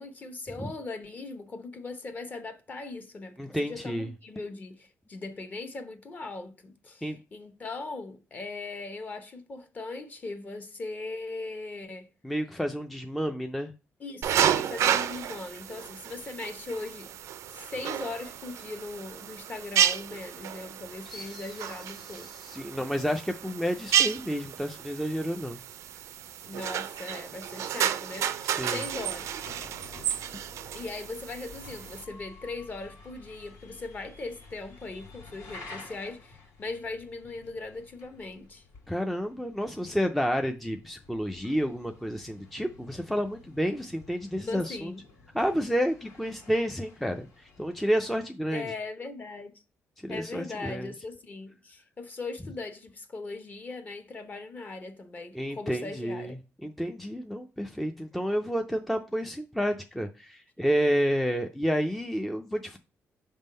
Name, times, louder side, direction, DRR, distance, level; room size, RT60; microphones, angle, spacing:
voice 1, 0.0-12.1 14.0-17.1 17.5-22.3 26.4-29.5 30.7-38.6 44.5-45.0 48.5-49.6 50.1-56.4, left 3 dB, 30° left, 0.9 m, -39 dB
voice 2, 3.4-4.1 7.0-7.2 12.2-13.7 21.1-21.5 22.0-25.6 28.4-28.8 30.3-30.4 38.9-44.9 45.3-48.7 50.0-50.9 55.3-56.3 56.6-62.8, equal, ahead, 0.4 m, -30 dB
sound 1, 14.2-32.0, right 10 dB, 70° right, 0.4 m, -31 dB
sound 2, 28.8-48.2, left 3 dB, 85° left, 2.0 m, -51 dB
5.9 x 3.6 x 5.3 m
cardioid pair, 145°, 5 cm